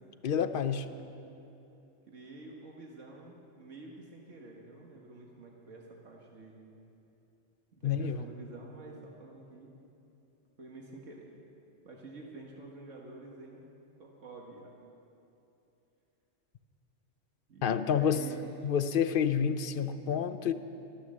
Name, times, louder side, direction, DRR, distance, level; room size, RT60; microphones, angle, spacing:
voice 1, 0.2-0.9 7.8-8.2 17.6-18.2 18.6-20.5, left 7 dB, 55° left, 11 dB, 0.6 m, -28 dB
voice 2, 2.1-6.7 7.7-9.8 10.6-11.3 11.8-13.7 14.0-14.7 17.5-18.4 18.6-18.8, right 3 dB, 80° right, -1 dB, 1.7 m, -49 dB
13.0 x 13.0 x 7.4 m, 2.8 s
omnidirectional pair, 1.3 m